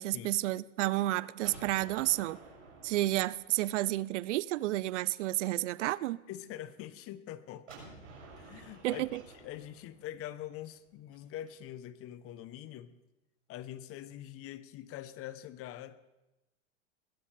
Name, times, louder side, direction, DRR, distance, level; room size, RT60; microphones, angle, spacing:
voice 1, 0.0-2.4 2.8-6.2 8.8-9.2, right 16 dB, 70° right, 0.5 m, -31 dB
Gunshot gunfire, 1.4-4.2 7.7-11.5, right 3 dB, 90° right, 6.6 m, -52 dB
voice 2, 6.3-7.7 8.4-9.0 9.4-13.0 13.5-16.0, left 12 dB, 35° left, 0.9 m, -44 dB
21.0 x 16.5 x 3.4 m
hypercardioid pair, 105°, 38 cm